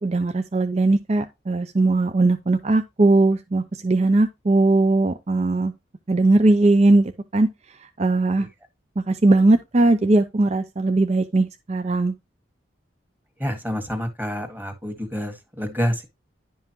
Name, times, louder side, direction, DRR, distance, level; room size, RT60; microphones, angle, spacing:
voice 1, 0.0-5.7 6.1-7.5 8.0-8.5 9.0-12.1, right 2 dB, 35° right, 0.5 m, -19 dB
voice 2, 13.4-16.0, equal, 10° right, 1.7 m, -28 dB
11.0 x 5.5 x 3.0 m
head